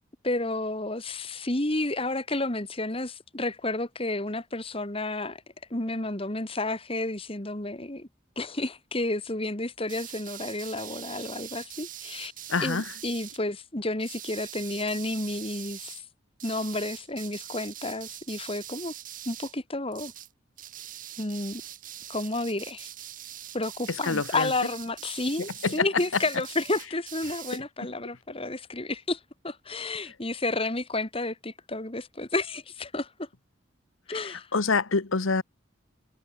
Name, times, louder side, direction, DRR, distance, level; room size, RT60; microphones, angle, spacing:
voice 1, 0.2-5.4 5.7-8.1 8.4-12.3 12.6-16.0 16.4-18.9 19.3-20.1 21.2-21.6 22.1-22.9 23.5-29.2 29.4-33.3 34.1-34.5, left 2 dB, 30° left, 2.0 m, -31 dB
sound 1, 9.9-13.4 14.0-16.0 16.4-19.6 19.9-20.3 20.6-27.6, right 12 dB, 40° right, 2.3 m, -43 dB
voice 2, 12.5-12.9 23.9-24.5 25.6-25.9 27.8-27.9 34.1-35.4, left 4 dB, 85° left, 1.2 m, -27 dB
head